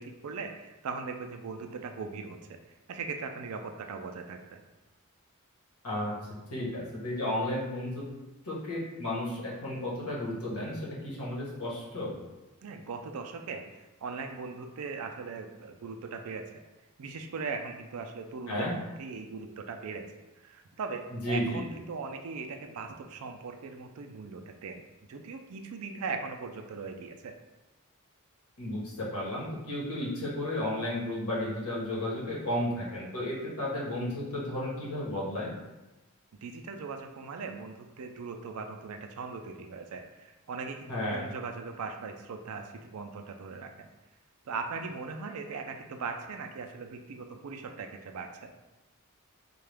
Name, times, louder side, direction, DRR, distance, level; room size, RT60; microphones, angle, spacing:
voice 1, 0.0-2.4 2.9-4.6 12.6-16.4 17.0-20.0 20.4-24.8 25.1-27.3 36.3-43.9 44.5-48.5, right 4 dB, 75° right, 5 dB, 0.4 m, -39 dB
voice 2, 6.5-8.0 8.4-12.2 18.5-18.7 21.1-21.6 28.6-35.5 40.9-41.3, left 1 dB, 80° left, -5 dB, 1.2 m, -33 dB
3.6 x 2.3 x 3.3 m, 1.0 s
head